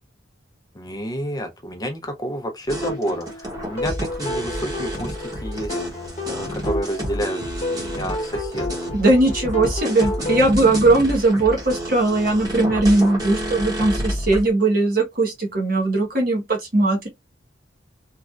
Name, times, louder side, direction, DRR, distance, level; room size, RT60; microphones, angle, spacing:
voice 1, 0.7-5.1 5.4-7.4 7.7-8.8, equal, 20° left, 0.6 m, -29 dB
sound 1, 2.7-14.5, equal, 20° right, 1.1 m, -30 dB
sound 2, 2.8-10.5, left 2 dB, 35° left, 1.1 m, -31 dB
voice 2, 8.9-17.1, right 2 dB, 50° right, 1.2 m, -19 dB
3.2 x 2.7 x 2.4 m
head